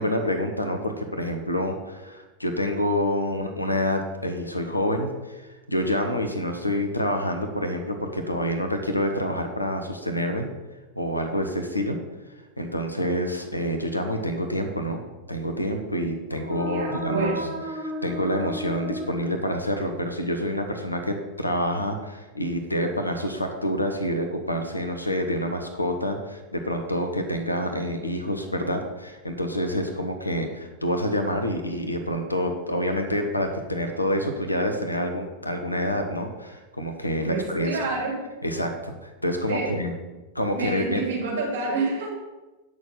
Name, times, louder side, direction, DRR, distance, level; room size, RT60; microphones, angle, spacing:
voice 1, 0.0-10.5 11.0-12.0 12.6-15.0 15.3-17.3 17.8-37.7 38.4-39.9 40.3-41.0, equal, 85° left, 5 dB, 1.1 m, -27 dB
sound 1, 16.2-20.0, equal, 20° right, 2.8 m, -35 dB
voice 2, 16.7-17.4 37.3-38.2 39.5-39.7 40.5-42.1, right 3 dB, 55° right, -2 dB, 3.2 m, -28 dB
9.1 x 6.4 x 5.6 m, 1.1 s
figure-of-eight pair, 90°, 0 cm